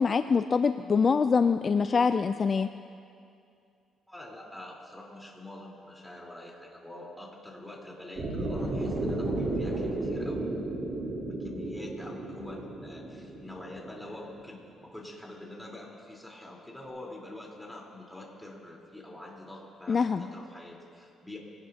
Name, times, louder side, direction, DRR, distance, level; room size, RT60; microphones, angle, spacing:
voice 1, 0.0-2.7 19.9-20.2, left 5 dB, 40° left, 10 dB, 0.4 m, -24 dB
voice 2, 4.1-10.5 11.2-21.4, left 1 dB, 5° left, -3 dB, 4.0 m, -45 dB
sound 1, 8.2-14.3, right 2 dB, 50° right, 4.1 m, -33 dB
24.5 x 18.5 x 2.9 m, 2.5 s
cardioid pair, 90°, 0 cm